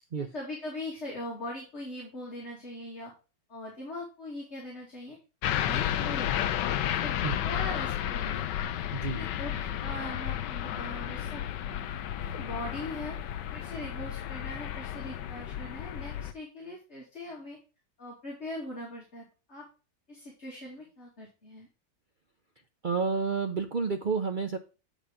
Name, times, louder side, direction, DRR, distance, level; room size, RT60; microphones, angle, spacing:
voice 1, 0.3-3.1 3.5-5.2 5.5-6.6 6.8-7.2 7.4-8.5 9.1-11.4 11.9-12.0 12.3-13.2 13.5-17.6 18.0-19.7 20.1-21.7, left 1 dB, 40° left, -4 dB, 3.1 m, -41 dB
sound 1, 5.4-16.3, left 11 dB, 80° left, 1.3 m, -32 dB
voice 2, 8.9-9.2 22.8-24.6, right 5 dB, 65° right, 5 dB, 0.4 m, -30 dB
8.6 x 5.3 x 5.0 m, 0.32 s
omnidirectional pair, 1.9 m